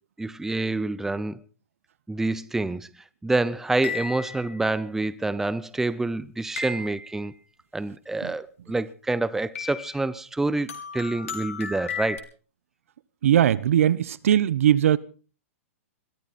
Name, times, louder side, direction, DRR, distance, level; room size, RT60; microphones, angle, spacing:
voice 1, 0.2-1.4 2.1-7.3 7.7-12.2, right 2 dB, 5° right, 0.8 m, -27 dB
sound 1, 3.8-4.6 6.6-7.3 9.6-10.2 10.7-12.2, left 5 dB, 80° left, 4.2 m, -34 dB
voice 2, 13.2-15.0, right 10 dB, 70° right, 1.0 m, -20 dB
22.0 x 14.5 x 4.3 m
hypercardioid pair, 130°, 8 cm